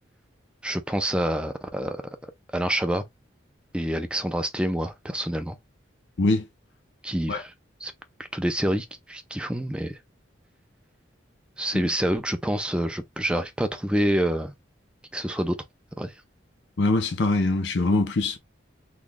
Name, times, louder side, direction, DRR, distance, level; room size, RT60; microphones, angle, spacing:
voice 1, 0.6-2.0 2.5-3.0 3.7-5.6 7.0-7.5 7.8-7.9 8.3-10.0 11.6-14.5 15.1-15.6 16.0-16.1, right 1 dB, 5° right, 0.5 m, -27 dB
voice 2, 16.8-18.4, left 2 dB, 70° left, 0.6 m, -23 dB
3.7 x 3.1 x 2.2 m
head